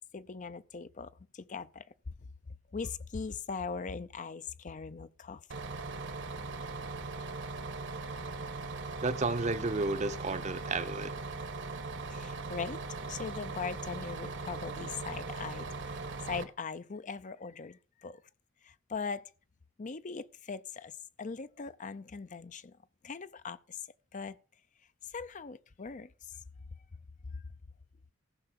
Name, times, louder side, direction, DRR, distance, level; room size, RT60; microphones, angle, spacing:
voice 1, 0.1-1.8 2.7-5.4 12.1-12.8 13.1-15.7 16.2-18.2 18.6-19.3 19.8-20.9 21.2-22.8 23.0-23.8 24.1-24.4 25.1-26.1 27.3-27.4, left 5 dB, 40° left, 0.5 m, -40 dB
Bus, 5.5-16.4, right 3 dB, 65° right, 1.4 m, -40 dB
voice 2, 9.0-11.1, right 3 dB, 35° right, 0.8 m, -32 dB
15.0 x 5.7 x 6.8 m
head